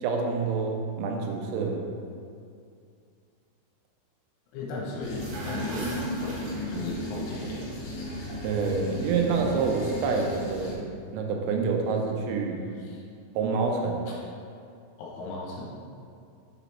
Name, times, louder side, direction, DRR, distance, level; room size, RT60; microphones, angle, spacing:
voice 1, 0.0-1.8 8.4-10.8 11.1-12.6 13.4-14.1, right 4 dB, 90° right, 1 dB, 3.3 m, -27 dB
voice 2, 4.5-7.7 12.8-13.0 14.1-14.2 15.0-15.8, left 3 dB, 75° left, -5 dB, 3.2 m, -37 dB
sound 1, 5.0-10.7, equal, 60° left, 3.1 m, -36 dB
sound 2, 5.2-7.2, right 2 dB, 65° right, 2.7 m, -36 dB
7.4 x 5.0 x 3.3 m, 2.4 s
omnidirectional pair, 5.7 m